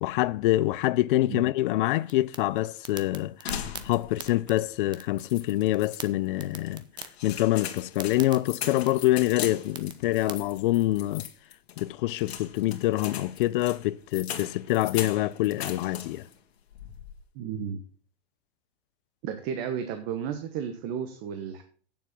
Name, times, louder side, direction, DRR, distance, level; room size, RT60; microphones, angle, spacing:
voice 1, 0.0-3.3 3.8-6.8 7.2-11.3 11.8-16.3, left 16 dB, 60° left, 0.5 m, -25 dB
sound 1, 2.0-10.3, right 7 dB, 15° right, 0.7 m, -45 dB
sound 2, 3.5-4.4 4.7-4.8 5.2-6.1 6.7-16.4 16.7-17.2, left 9 dB, 85° left, 1.9 m, -39 dB
voice 2, 17.3-17.8 19.2-21.6, right 8 dB, 40° right, 1.3 m, -33 dB
9.1 x 7.1 x 5.9 m
supercardioid pair, 145°, 31 cm